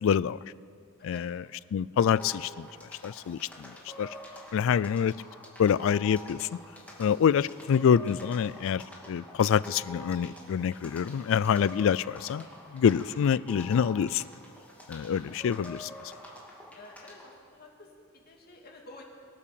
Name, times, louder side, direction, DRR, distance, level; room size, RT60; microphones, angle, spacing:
voice 1, 0.0-0.4 1.0-1.5 1.7-4.1 4.5-5.2 5.6-6.6 7.0-14.2 14.9-15.9, left 7 dB, 65° left, 21 dB, 0.3 m, -26 dB
sound 1, 2.0-17.3, equal, 5° left, 2.3 m, -47 dB
voice 2, 16.7-19.0, left 2 dB, 45° left, 0 dB, 2.3 m, -50 dB
23.0 x 8.4 x 7.0 m, 2.3 s
head